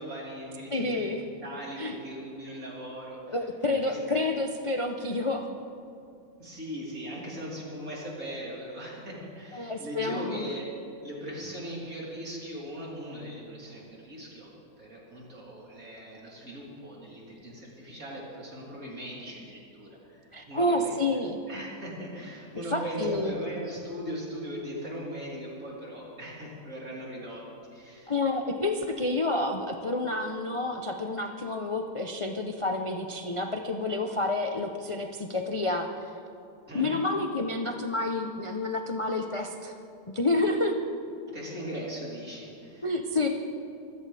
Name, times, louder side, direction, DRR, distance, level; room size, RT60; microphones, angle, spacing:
voice 1, 0.0-1.0 1.4-4.2 5.0-5.4 6.4-14.5 14.8-20.9 21.5-27.5 27.7-28.1 36.7-36.9 41.3-42.9, equal, 45° right, -5 dB, 4.3 m, -39 dB
voice 2, 0.7-1.2 1.8-2.0 3.3-5.5 9.5-10.5 20.3-21.4 22.7-23.3 28.1-36.1 36.7-39.7 40.1-40.8 42.8-43.3, left 2 dB, 50° left, 3 dB, 0.3 m, -29 dB
25.0 x 16.0 x 3.5 m, 2.6 s
omnidirectional pair, 2.0 m